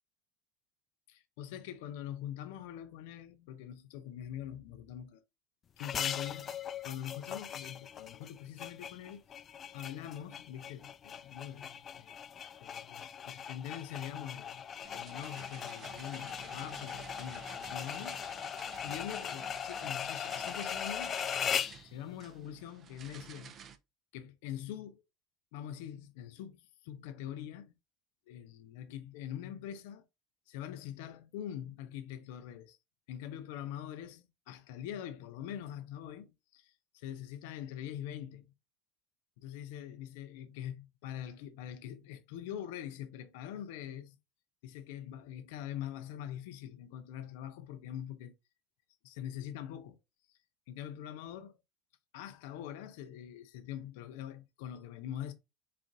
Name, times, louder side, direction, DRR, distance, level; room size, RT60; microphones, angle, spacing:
voice 1, 1.1-5.2 5.8-9.2 9.7-12.1 12.6-14.6 14.9-18.6 18.8-23.6 24.1-25.0 25.5-27.7 28.3-30.0 30.5-32.8 33.1-38.5 39.4-44.2 44.6-48.3 49.0-50.0 50.7-51.5 52.1-55.3, left 10 dB, 85° left, 0.6 m, -44 dB
sound 1, 5.8-21.8, left 8 dB, 35° left, 0.3 m, -39 dB
sound 2, 14.8-23.8, right 7 dB, 40° right, 0.6 m, -52 dB
4.3 x 2.6 x 3.8 m
supercardioid pair, 120°, 0 cm